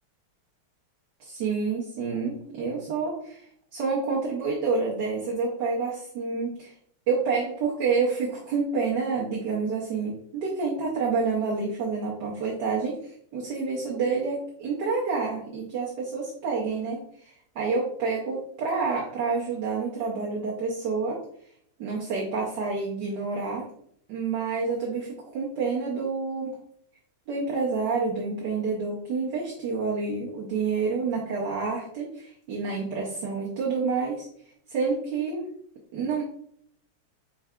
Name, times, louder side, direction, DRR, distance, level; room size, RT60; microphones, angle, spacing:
voice 1, 1.2-6.7 7.1-21.2 21.8-23.7 24.1-26.6 27.3-34.3 34.7-35.5 35.9-36.2, right 4 dB, 60° right, -4 dB, 1.2 m, -28 dB
4.6 x 4.5 x 2.3 m, 0.66 s
omnidirectional pair, 2.4 m